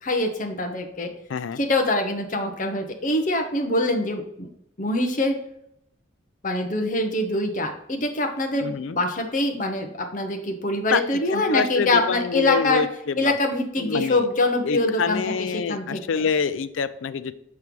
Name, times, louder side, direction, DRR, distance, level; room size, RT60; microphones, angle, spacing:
voice 1, 0.0-1.1 1.6-4.5 4.8-5.4 6.4-12.8 13.2-16.2, left 2 dB, 40° left, 4 dB, 0.8 m, -24 dB
voice 2, 8.6-9.0 10.9-13.3 13.8-14.2 14.6-17.3, left 6 dB, 80° left, 14 dB, 0.4 m, -26 dB
5.9 x 3.3 x 5.2 m, 0.74 s
head